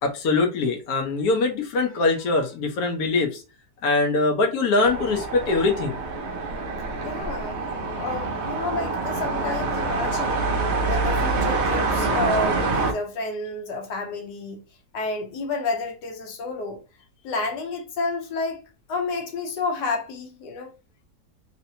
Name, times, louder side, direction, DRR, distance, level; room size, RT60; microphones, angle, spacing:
voice 1, 0.0-3.4 3.8-6.0, left 3 dB, 70° left, 1.2 m, -22 dB
sound 1, 4.8-12.9, right 3 dB, 60° right, 0.7 m, -26 dB
voice 2, 7.0-7.6 7.9-10.5 10.8-14.6 14.9-16.8 17.2-18.6 18.9-20.7, left 3 dB, 85° left, 1.4 m, -30 dB
3.2 x 2.8 x 2.7 m
omnidirectional pair, 1.7 m